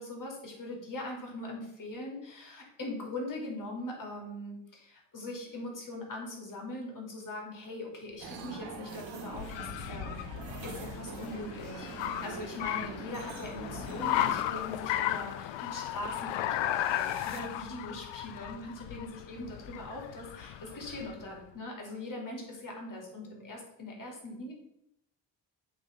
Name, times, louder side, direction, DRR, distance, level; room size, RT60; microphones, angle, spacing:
voice 1, 0.0-10.3 10.6-24.5, left 2 dB, 45° left, 0 dB, 3.0 m, -41 dB
sound 1, 8.2-14.4, right 5 dB, 80° right, 1.4 m, -44 dB
Car, 8.3-21.3, left 12 dB, 90° left, 0.5 m, -35 dB
sound 2, 16.3-18.5, right 5 dB, 40° right, 1.3 m, -56 dB
7.9 x 3.6 x 5.2 m, 0.80 s
cardioid pair, 65°, 44 cm